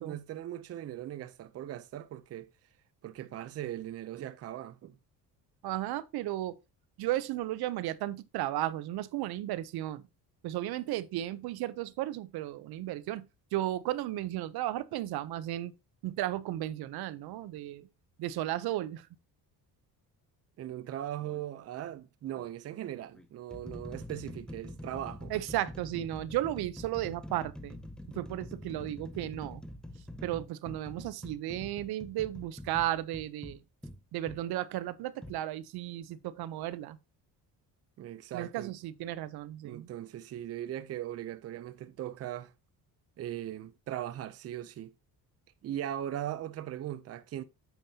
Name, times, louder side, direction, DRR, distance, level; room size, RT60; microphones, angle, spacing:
voice 1, 0.0-2.5 3.0-5.0 20.6-25.3 38.0-38.7 39.6-42.5 43.2-44.9 45.6-47.4, right 12 dB, 40° right, 0.6 m, -39 dB
voice 2, 5.6-6.6 7.0-10.0 10.4-13.3 13.5-15.7 16.0-17.9 18.2-19.1 25.3-27.8 28.1-29.6 30.2-33.6 34.1-37.0 38.3-39.9, right 14 dB, 75° right, 0.8 m, -34 dB
sound 1, 21.2-21.5 22.3-22.5 23.1-34.4 35.2-35.4, left 1 dB, ahead, 0.5 m, -45 dB
9.2 x 7.1 x 2.8 m
cardioid pair, 170°, 38 cm